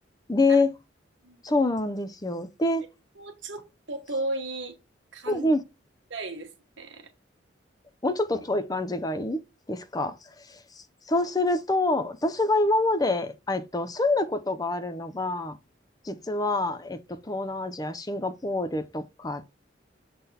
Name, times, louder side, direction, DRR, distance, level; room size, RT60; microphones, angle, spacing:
voice 1, 0.3-0.7 1.4-2.9 5.3-5.6 8.0-9.4 9.7-15.6 16.0-19.4, left 2 dB, 20° left, 0.5 m, -26 dB
voice 2, 3.1-4.8 5.1-5.5 6.1-7.1, right 2 dB, 75° right, 1.5 m, -35 dB
6.7 x 3.9 x 4.1 m
head